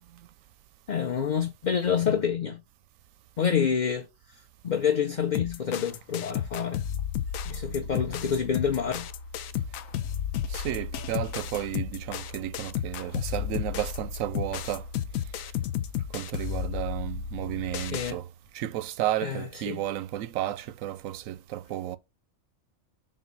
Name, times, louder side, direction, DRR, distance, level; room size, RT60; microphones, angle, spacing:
voice 1, 0.9-2.6 3.4-6.8 7.4-9.1 17.9-18.2 19.2-19.8, left 7 dB, 45° left, 0.7 m, -28 dB
sound 1, 5.3-18.1, left 9 dB, 80° left, 1.0 m, -33 dB
voice 2, 10.5-14.8 15.4-15.5 16.1-18.3 18.5-22.0, right 13 dB, 80° right, 1.0 m, -32 dB
7.3 x 2.5 x 5.2 m
omnidirectional pair, 1.4 m